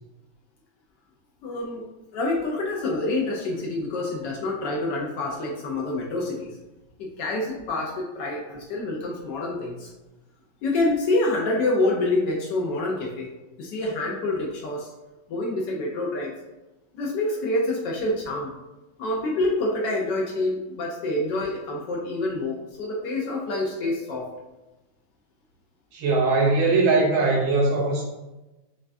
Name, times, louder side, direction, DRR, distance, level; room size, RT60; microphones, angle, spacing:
voice 1, 1.4-1.8 2.1-6.5 7.0-9.9 10.6-13.3 13.6-14.9 15.3-16.3 16.9-18.5 19.0-24.3, left 2 dB, 75° left, -2 dB, 1.2 m, -27 dB
voice 2, 25.9-28.0, right 3 dB, 75° right, -3 dB, 1.5 m, -20 dB
5.8 x 2.3 x 2.5 m, 1.0 s
omnidirectional pair, 2.0 m